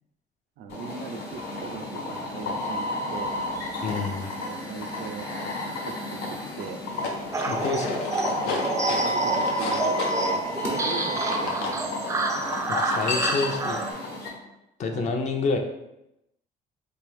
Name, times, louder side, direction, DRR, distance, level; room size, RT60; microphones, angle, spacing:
voice 1, 0.6-3.4 4.4-5.3 5.8-6.8 8.4-10.0 10.3-11.9 14.9-15.1, right 6 dB, 80° right, 6 dB, 0.4 m, -39 dB
sound 1, 0.7-14.3, left 1 dB, 75° left, 1.1 m, -32 dB
voice 2, 3.8-4.3 7.4-8.0 12.7-13.8 14.8-15.6, left 4 dB, 45° left, 4 dB, 0.5 m, -28 dB
sound 2, 6.8-11.8 12.8-13.7, left 4 dB, 90° left, 0.6 m, -33 dB
sound 3, 7.3-13.9, right 3 dB, 20° right, 0.4 m, -29 dB
3.3 x 2.6 x 3.4 m, 0.88 s
cardioid pair, 110°, 17 cm